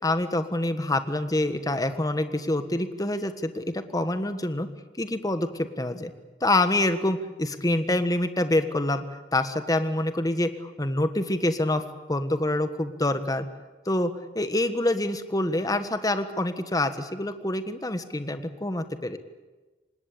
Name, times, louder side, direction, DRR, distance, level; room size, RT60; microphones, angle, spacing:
voice 1, 0.0-4.7 5.0-6.1 6.4-9.0 9.3-11.8 12.1-13.5 13.8-19.2, left 1 dB, 20° left, 9 dB, 1.5 m, -26 dB
26.0 x 20.0 x 8.6 m, 1.2 s
head